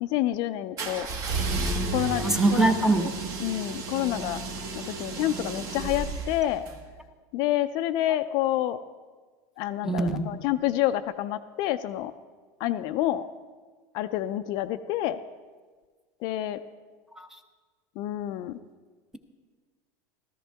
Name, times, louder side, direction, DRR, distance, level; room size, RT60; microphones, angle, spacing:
voice 1, 0.0-1.1 1.9-2.3 2.5-3.1 3.4-4.4 5.0-6.6 7.3-8.8 9.6-12.1 12.6-13.2 13.9-15.2 16.2-16.6 18.0-18.6, left 13 dB, 50° left, 11 dB, 0.4 m, -28 dB
sound 1, 0.8-6.8, right 3 dB, 40° right, 1.3 m, -32 dB
voice 2, 2.2-3.1 9.8-10.3, right 2 dB, 5° right, 8 dB, 0.7 m, -23 dB
14.0 x 14.0 x 3.4 m, 1.4 s
supercardioid pair, 150°, 9 cm